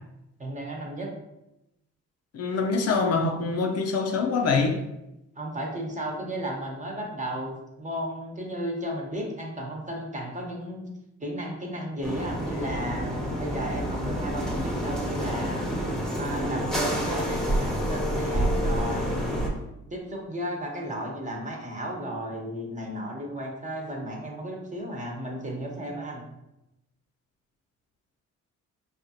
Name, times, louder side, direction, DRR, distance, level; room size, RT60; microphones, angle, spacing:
voice 1, 0.4-1.1 5.3-10.9 11.2-15.7 16.2-19.4 19.9-26.2, right 1 dB, 25° right, 0 dB, 1.0 m, -34 dB
voice 2, 2.3-4.8, left 4 dB, 55° left, 3 dB, 0.5 m, -25 dB
sound 1, 12.0-19.5, equal, ahead, 1.0 m, -28 dB
5.0 x 2.4 x 2.8 m, 0.90 s
cardioid pair, 90°, 30 cm